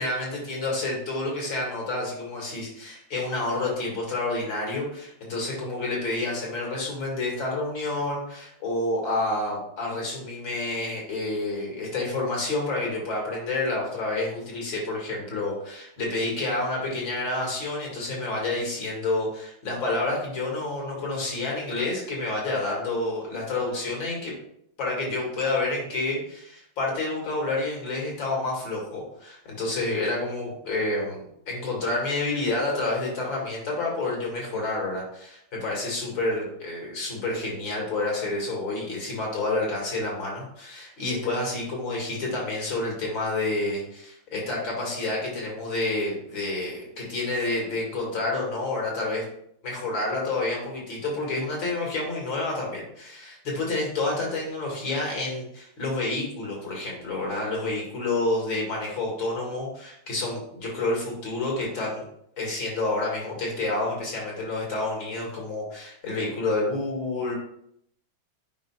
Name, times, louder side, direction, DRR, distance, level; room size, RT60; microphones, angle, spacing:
voice 1, 0.0-24.3 24.8-49.2 49.6-62.0 62.4-67.3, left 2 dB, 70° left, -3 dB, 2.8 m, -29 dB
9.1 x 5.3 x 2.4 m, 0.71 s
omnidirectional pair, 2.2 m